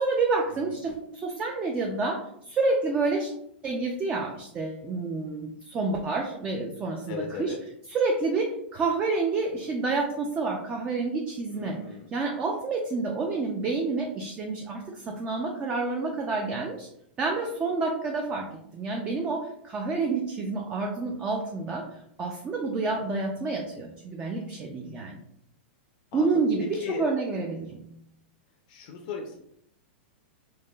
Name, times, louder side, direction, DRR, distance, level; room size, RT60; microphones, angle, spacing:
voice 1, 0.0-3.3 3.6-7.5 7.9-16.9 17.2-25.2 26.1-27.9, right 3 dB, 15° right, 1 dB, 0.3 m, -29 dB
voice 2, 7.1-7.6 11.5-12.1 26.1-26.4 26.8-27.1 28.7-29.4, left 5 dB, 45° left, 2 dB, 0.5 m, -36 dB
4.6 x 2.5 x 2.3 m, 0.73 s
supercardioid pair, 160°, 6 cm